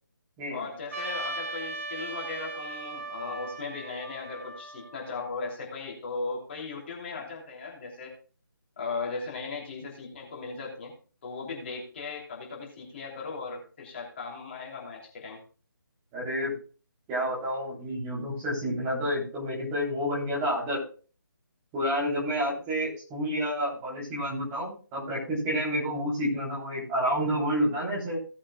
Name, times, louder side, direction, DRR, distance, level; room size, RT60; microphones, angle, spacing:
voice 1, 0.5-8.1 8.8-10.9 11.2-15.4, left 4 dB, 30° left, -1 dB, 3.1 m, -37 dB
Trumpet, 0.9-5.4, right 2 dB, 40° right, 1.9 m, -38 dB
voice 2, 16.1-16.5 17.1-20.8 21.7-28.2, equal, 15° right, -5 dB, 3.3 m, -29 dB
17.5 x 8.5 x 2.3 m, 0.38 s
figure-of-eight pair, 150°, 12 cm